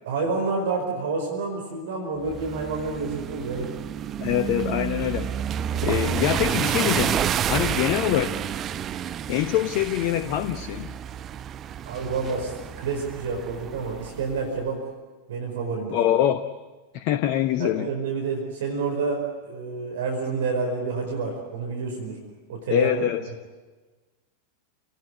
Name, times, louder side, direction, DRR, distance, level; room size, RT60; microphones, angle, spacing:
voice 1, 0.0-3.7 11.8-14.8 15.3-16.0 17.6-22.2 22.5-23.1, right 4 dB, 60° right, 1 dB, 5.0 m, -29 dB
sound 1, 2.2-14.4, right 9 dB, 30° right, 0.8 m, -30 dB
voice 2, 4.2-5.3 5.7-8.3 9.3-10.9 15.9-16.4 16.9-17.9 22.7-23.2, left 12 dB, 45° left, 11 dB, 1.1 m, -24 dB
29.0 x 19.0 x 9.7 m, 1.3 s
figure-of-eight pair, 90°, 0 cm